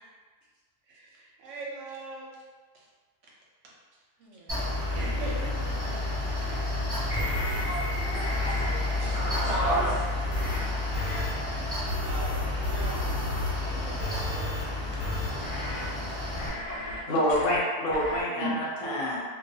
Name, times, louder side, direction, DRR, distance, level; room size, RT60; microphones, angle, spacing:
voice 1, 0.9-2.3 2.7-2.8 3.2-3.3 4.2-6.6 7.1-7.7 12.0-14.5 16.0-16.1 17.1-17.2, right 2 dB, 65° right, -4 dB, 0.8 m, -42 dB
Mechanical fan, 4.5-16.5, left 2 dB, 25° right, 0.5 m, -31 dB
sound 1, 7.0-11.2 11.5-11.6, equal, ahead, 1.0 m, -40 dB
sound 2, 7.1-7.7 8.1-8.8 9.1-10.0 10.3-10.6 10.9-11.3 11.9-13.6 14.0-14.6 15.0-15.9 16.4-17.0 17.3-17.6 17.9-18.2, left 1 dB, 90° left, 1.1 m, -33 dB
voice 2, 7.7-10.0 18.3-19.0, right 1 dB, 90° right, -10 dB, 0.4 m, -33 dB
voice 3, 17.1-19.2, equal, 70° left, -5 dB, 0.5 m, -27 dB
2.3 x 2.3 x 2.6 m, 1.5 s
omnidirectional pair, 1.6 m